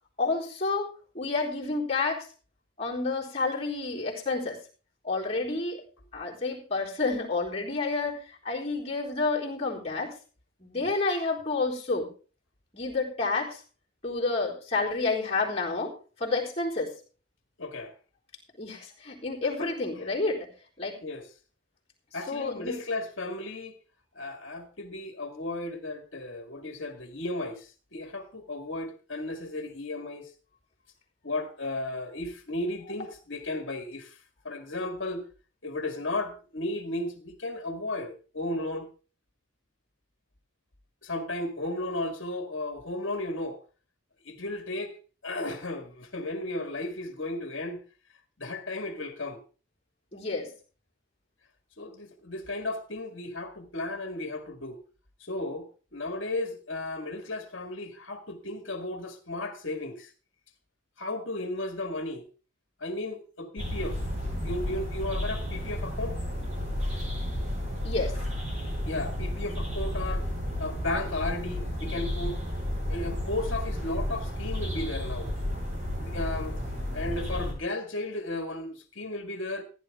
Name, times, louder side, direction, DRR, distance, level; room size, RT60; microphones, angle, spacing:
voice 1, 0.2-2.3 2.8-4.6 5.0-5.8 6.1-10.1 10.6-12.1 12.7-13.6 14.0-16.9 18.6-20.5 20.8-21.0 22.3-22.8 50.1-50.5 67.8-68.2, left 3 dB, 30° left, 4.0 m, -30 dB
voice 2, 17.6-17.9 19.6-20.0 21.0-21.3 22.1-23.7 24.2-30.3 31.2-34.2 34.4-35.2 35.6-38.9 41.0-43.6 44.2-45.0 45.2-47.8 48.4-49.4 51.8-54.8 55.2-60.1 61.0-62.3 62.8-64.0 64.4-66.2 68.8-70.3 70.6-72.4 72.9-75.3 76.0-76.6 76.9-79.6, left 2 dB, 60° left, 1.9 m, -34 dB
sound 1, 63.6-77.5, left 1 dB, 35° right, 5.8 m, -32 dB
15.5 x 10.5 x 3.6 m
head